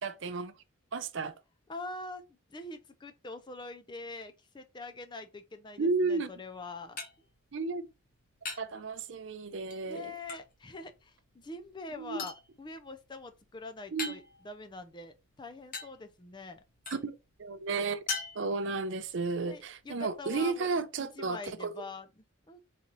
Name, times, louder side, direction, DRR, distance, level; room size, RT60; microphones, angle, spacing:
voice 1, 0.0-0.5 0.9-1.3 5.8-6.3 7.5-7.9 8.6-10.1 12.0-12.2 13.9-14.1 16.9-17.1 17.4-18.0 18.3-21.8, right 4 dB, 65° right, 0.5 m, -33 dB
voice 2, 1.7-2.2 2.5-7.0 9.9-16.6 19.5-20.7 21.0-22.6, left 3 dB, 20° left, 0.4 m, -44 dB
sound 1, 6.3-20.7, left 4 dB, 40° left, 1.0 m, -46 dB
4.1 x 3.9 x 3.0 m
head